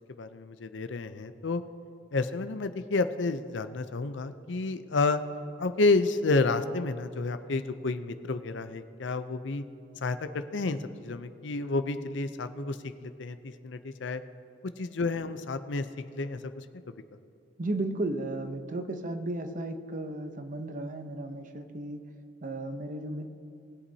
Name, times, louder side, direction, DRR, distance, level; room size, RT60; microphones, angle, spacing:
voice 1, 0.2-1.6 2.1-5.2 5.6-9.6 10.0-14.2 14.8-15.9 16.1-16.6, left 3 dB, 70° left, 10 dB, 0.6 m, -30 dB
voice 2, 17.6-22.0 22.4-23.3, right 2 dB, 45° right, 8 dB, 0.7 m, -34 dB
20.5 x 8.2 x 2.8 m, 2.7 s
head